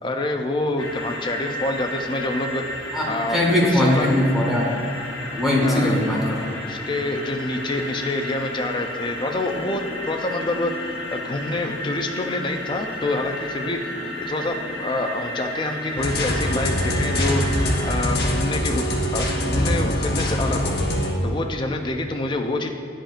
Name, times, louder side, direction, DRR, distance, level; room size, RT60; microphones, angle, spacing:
voice 1, 0.0-2.6 3.1-3.4 3.7-4.1 5.6-6.0 6.6-10.7 11.1-13.8 14.2-17.4 17.8-20.8 21.2-22.7, left 2 dB, 25° left, 4 dB, 0.4 m, -27 dB
sound 1, 0.8-18.0, left 1 dB, 85° left, 1.0 m, -33 dB
voice 2, 3.3-4.7 5.3-6.4, left 1 dB, ahead, -5 dB, 1.2 m, -20 dB
sound 2, 16.0-21.1, equal, 55° left, 0.9 m, -23 dB
10.0 x 5.0 x 2.5 m, 2.5 s
head